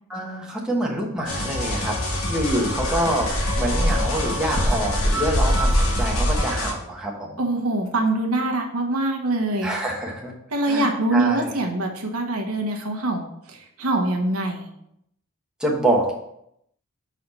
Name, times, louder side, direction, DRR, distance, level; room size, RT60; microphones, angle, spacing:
voice 1, 0.1-2.0 2.3-7.4 9.6-10.3 10.7-11.5 15.6-16.1, right 1 dB, 5° right, -2 dB, 1.1 m, -26 dB
sound 1, 1.3-6.7, left 1 dB, 70° left, 1.3 m, -27 dB
Dog, 1.7-1.8 2.2-6.4, equal, 55° left, 1.0 m, -24 dB
voice 2, 7.4-9.7 10.5-14.7, right 2 dB, 90° right, 3 dB, 1.2 m, -24 dB
5.6 x 4.2 x 5.3 m, 0.76 s
head